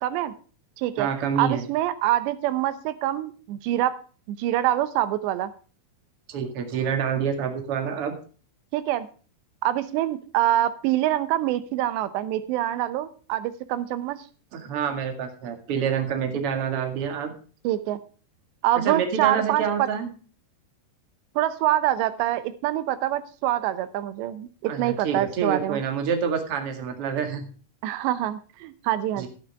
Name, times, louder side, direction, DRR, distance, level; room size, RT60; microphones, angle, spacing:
voice 1, 0.0-0.3 0.8-1.1 1.4-4.0 4.3-5.5 8.7-9.1 9.6-14.2 17.6-18.0 18.6-19.9 21.4-25.8 27.8-29.3, right 13 dB, 90° right, 13 dB, 3.1 m, -25 dB
voice 2, 1.0-1.6 6.3-8.1 14.5-17.3 18.8-20.1 24.7-27.5 29.2-29.3, right 7 dB, 45° right, 5 dB, 2.3 m, -27 dB
12.5 x 11.5 x 3.4 m, 0.38 s
omnidirectional pair, 4.9 m